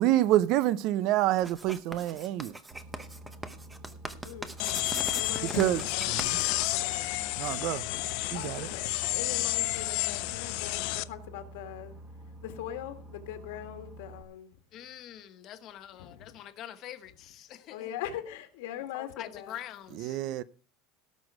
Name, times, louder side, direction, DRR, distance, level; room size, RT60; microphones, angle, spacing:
voice 1, 0.0-2.5 5.4-6.4 7.4-7.8 8.3-8.7 20.0-20.4, right 14 dB, 45° right, 0.5 m, -27 dB
Writing, 1.4-7.2, right 2 dB, 5° right, 0.7 m, -41 dB
Boat Water vehicle, 2.7-14.2, right 1 dB, 20° right, 1.4 m, -48 dB
sound 1, 4.6-11.0, left 21 dB, 55° left, 0.5 m, -31 dB
voice 2, 5.1-6.2 6.7-7.2 8.3-12.0 12.4-14.6 16.0-16.4 17.7-19.5, left 11 dB, 75° left, 1.6 m, -41 dB
voice 3, 14.7-17.9 18.9-20.2, left 11 dB, 35° left, 0.9 m, -45 dB
17.5 x 6.2 x 4.7 m
cardioid pair, 175°, 0 cm